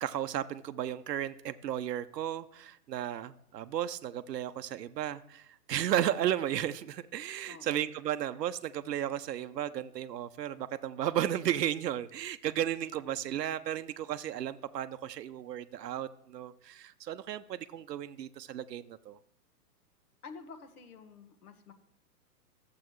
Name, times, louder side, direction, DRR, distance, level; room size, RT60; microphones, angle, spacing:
voice 1, 0.0-19.2, right 11 dB, 85° right, 11 dB, 0.6 m, -34 dB
voice 2, 7.5-7.8 20.2-21.7, left 5 dB, 70° left, 8 dB, 1.4 m, -49 dB
12.0 x 7.6 x 3.1 m, 0.81 s
hypercardioid pair, 140°, 47 cm